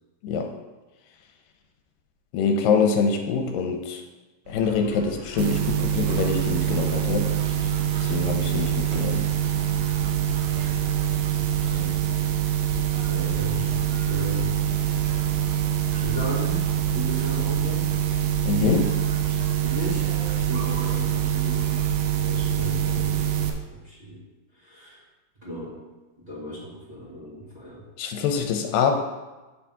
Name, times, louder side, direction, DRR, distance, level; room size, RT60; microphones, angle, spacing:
voice 1, 2.3-4.0 4.5-7.3 8.0-9.3 18.5-19.0 28.0-28.9, left 5 dB, 90° left, 4 dB, 2.3 m, -24 dB
sound 1, 4.4-23.0, equal, 70° right, 2.4 m, -41 dB
sound 2, 5.4-23.5, right 10 dB, 90° right, 2.4 m, -25 dB
voice 2, 11.7-12.0 13.1-14.7 16.0-17.9 19.6-21.9 22.2-24.2 24.5-25.0 25.4-25.7 26.2-27.8 28.2-28.5, equal, 20° right, -9 dB, 1.1 m, -36 dB
8.2 x 3.6 x 5.8 m, 1.2 s
omnidirectional pair, 4.0 m